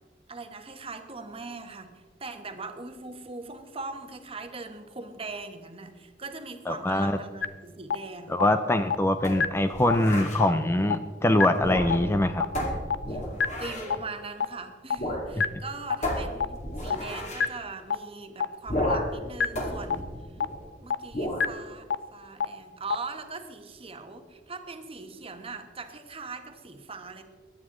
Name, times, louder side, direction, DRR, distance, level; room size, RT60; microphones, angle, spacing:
voice 1, 0.3-8.4 13.1-13.2 13.6-20.1 20.8-27.2, right 3 dB, 30° right, 7 dB, 1.2 m, -40 dB
voice 2, 6.7-7.2 8.3-12.4 15.4-15.5, left 1 dB, 15° left, 9 dB, 0.5 m, -23 dB
sound 1, 7.4-7.5 7.9-8.0 8.4-8.5 8.9-9.0 9.4-9.5 9.9-10.0 10.4-10.5 10.9-11.0 11.4-11.5 11.9-12.0 12.4-12.5 12.9-13.0 13.4-13.5 13.9-14.0 14.4-14.5 14.9-15.0 15.4-15.5 15.9-16.0 16.4-16.5 16.9-17.0 17.4-17.5 17.9-18.0 18.4-18.5 18.9-19.0 19.4-19.5 19.9-20.0 20.4-20.5 20.9-21.0 21.4-21.5 21.9-22.0 22.4-22.5 22.9-23.0, left 6 dB, 75° left, 0.6 m, -23 dB
sound 2, 9.2-10.4 11.5-12.2 12.5-14.0 15.0-15.3 15.5-15.6 16.0-17.5 18.7-19.2 19.5-20.7 21.1-21.5, left 1 dB, 40° left, 2.5 m, -32 dB
21.5 x 9.6 x 3.8 m, 1.4 s
head